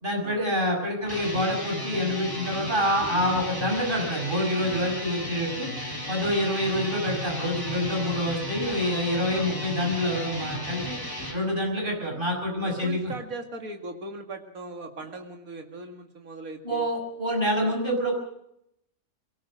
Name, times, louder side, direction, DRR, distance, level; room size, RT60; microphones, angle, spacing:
voice 1, 0.0-5.7 6.1-10.9 11.3-13.1 16.6-18.1, equal, 35° right, 1 dB, 6.4 m, -27 dB
sound 1, 1.0-11.4, left 1 dB, 15° left, 3.4 m, -34 dB
voice 2, 12.6-16.9, right 2 dB, 75° right, 4 dB, 2.6 m, -39 dB
22.5 x 19.0 x 6.4 m, 0.77 s
omnidirectional pair, 1.5 m